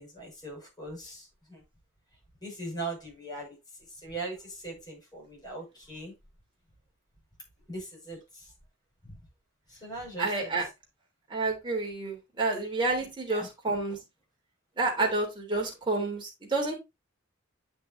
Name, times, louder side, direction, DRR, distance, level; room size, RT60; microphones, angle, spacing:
voice 1, 0.0-1.6 2.4-3.6 4.0-6.2 7.7-8.5 9.0-9.1 9.7-10.5 13.0-13.5, right 2 dB, 20° left, 5.9 m, -40 dB
voice 2, 10.2-10.6 11.3-14.0 14.8-16.7, right 3 dB, 25° right, 3.4 m, -29 dB
9.2 x 6.0 x 2.7 m
head